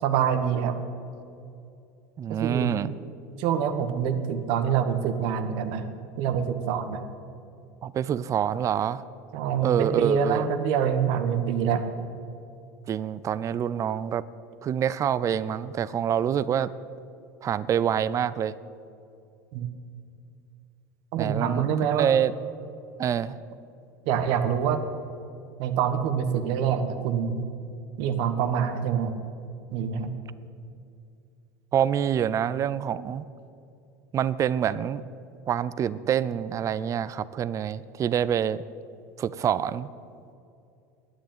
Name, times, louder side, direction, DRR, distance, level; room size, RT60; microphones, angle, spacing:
voice 1, 0.0-0.7 2.3-2.7 3.4-5.9 6.2-7.0 9.3-11.8 19.5-19.7 21.1-22.1 24.0-24.8 25.6-27.4 28.0-29.1 29.7-30.1, right 8 dB, 60° right, 9 dB, 1.3 m, -25 dB
voice 2, 2.2-2.9 7.8-9.0 9.6-10.5 12.9-14.2 14.6-16.7 17.4-18.5 21.2-22.3 23.0-23.4 31.7-33.2 34.1-35.0 35.5-38.6 39.2-39.9, right 9 dB, 35° right, 17 dB, 0.5 m, -26 dB
11.0 x 9.3 x 8.9 m, 2.5 s
hypercardioid pair, 90°, 9 cm